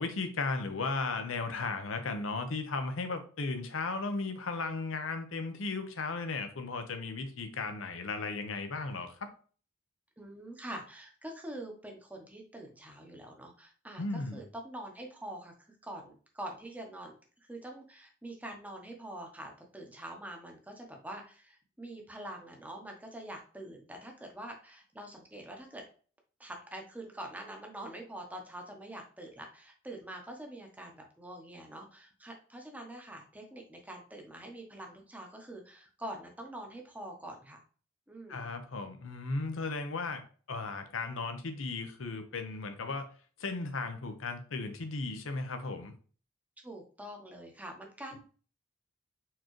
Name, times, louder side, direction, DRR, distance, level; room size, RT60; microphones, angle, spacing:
voice 1, 0.0-9.3 14.0-14.4 38.3-43.1 43.4-45.9, left 3 dB, 75° left, 7 dB, 0.8 m, -36 dB
voice 2, 10.2-17.1 17.4-25.8 26.4-37.6 38.1-38.5 46.6-48.2, right 1 dB, 10° right, 2 dB, 0.9 m, -45 dB
4.5 x 3.8 x 3.1 m, 0.41 s
head